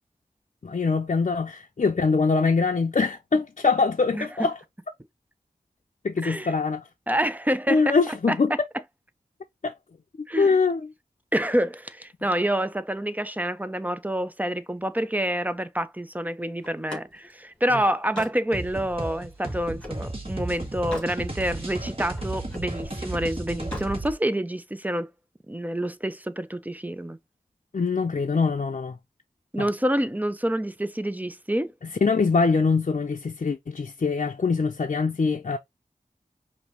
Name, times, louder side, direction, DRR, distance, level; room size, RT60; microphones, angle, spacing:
voice 1, 0.6-4.6 6.0-6.8 7.7-8.5 9.6-9.7 10.2-10.8 17.7-17.8 27.7-28.9 29.6-29.7 32.0-35.6, left 4 dB, 55° left, 0.5 m, -23 dB
voice 2, 6.2-6.5 7.1-8.4 10.3-10.6 11.3-25.1 25.5-27.2 29.5-31.7, right 1 dB, 10° right, 0.5 m, -27 dB
Slam, 16.6-20.1 20.5-21.2 21.6-22.8 23.5-24.0, left 1 dB, 5° left, 2.1 m, -41 dB
sound 1, 18.5-24.1, right 1 dB, 40° right, 1.6 m, -34 dB
5.1 x 2.7 x 2.9 m
wide cardioid pair, 55°, 14 cm